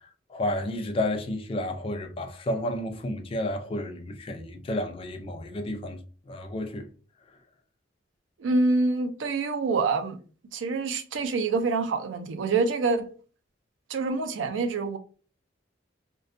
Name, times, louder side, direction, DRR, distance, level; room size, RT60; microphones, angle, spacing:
voice 1, 0.3-6.0 6.3-6.9, left 1 dB, 30° left, 0.3 m, -31 dB
voice 2, 8.4-10.2 10.5-13.1 13.9-15.0, right 3 dB, 90° right, 0.4 m, -26 dB
2.5 x 2.2 x 2.5 m
head